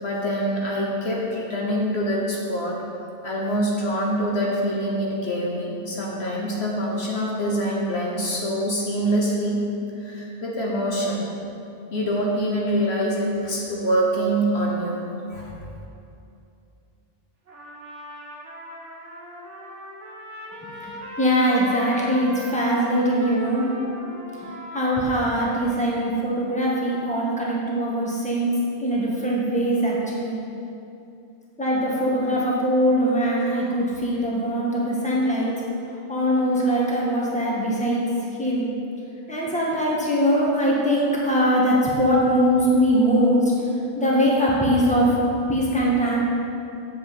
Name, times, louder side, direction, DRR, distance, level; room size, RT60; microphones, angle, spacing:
voice 1, 0.0-2.8 3.2-9.7 10.0-11.3 11.9-15.0 15.3-15.5, right 1 dB, 60° left, -3 dB, 1.5 m, -25 dB
Trumpet, 17.5-26.0, equal, 80° right, 1.6 m, -39 dB
voice 2, 20.6-23.7 24.4-30.4 31.6-35.5 35.8-38.0 38.4-38.7 39.3-45.2 45.5-46.2, equal, 5° left, -5 dB, 1.7 m, -22 dB
7.9 x 6.2 x 7.6 m, 2.7 s
omnidirectional pair, 1.2 m